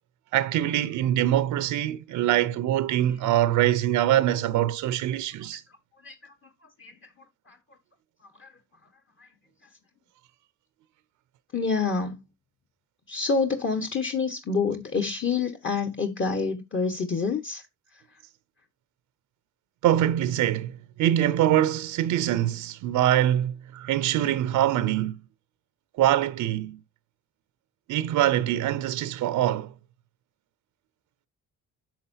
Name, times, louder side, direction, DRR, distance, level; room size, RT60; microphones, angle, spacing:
voice 1, 0.3-5.6 19.8-20.7 21.0-25.2 26.0-26.8 27.9-29.7, right 12 dB, 85° right, 0.6 m, -24 dB
voice 2, 6.0-6.3 6.8-6.9 7.5-7.6 8.4-8.5 9.2-9.3 11.5-12.2 13.1-17.6, left 4 dB, 40° left, 1.4 m, -27 dB
10.0 x 6.4 x 2.8 m
cardioid pair, 90°, 30 cm